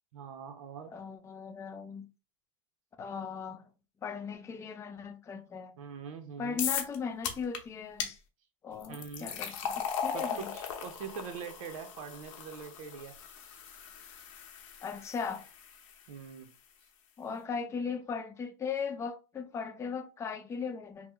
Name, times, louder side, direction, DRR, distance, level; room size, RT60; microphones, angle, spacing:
voice 1, 0.1-0.9 5.8-6.6 8.9-9.4 10.1-13.2 16.1-16.5, right 6 dB, 80° right, 0.6 m, -43 dB
voice 2, 0.9-2.1 3.0-3.6 4.0-5.7 6.4-8.2 8.6-10.5 14.8-15.5 17.2-21.1, left 6 dB, 15° left, 0.4 m, -38 dB
sound 1, 6.6-7.0 7.2-7.6 8.0-8.1 8.8-15.9, left 7 dB, 70° left, 0.8 m, -38 dB
2.9 x 2.0 x 3.4 m
supercardioid pair, 135°, 17 cm